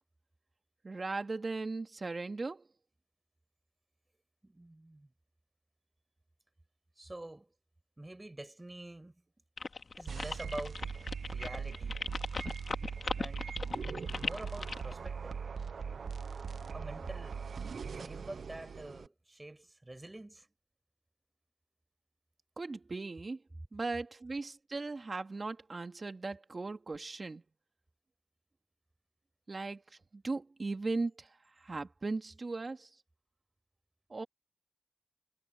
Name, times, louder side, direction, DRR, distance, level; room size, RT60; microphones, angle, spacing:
voice 1, 0.8-2.6 22.6-23.4 23.7-27.4 29.5-31.3 31.6-32.9 34.1-34.2, right 3 dB, 50° right, 2.5 m, -38 dB
voice 2, 4.4-5.1 7.0-7.5 8.0-9.2 10.0-10.9 11.2-12.0 13.2-13.6 14.2-15.4 16.7-17.4 18.0-20.5, right 1 dB, 25° right, 5.6 m, -46 dB
sound 1, 9.6-14.9, left 4 dB, 60° left, 2.3 m, -38 dB
sound 2, 10.1-19.1, right 6 dB, 80° right, 0.9 m, -40 dB
cardioid pair, 55°, 0 cm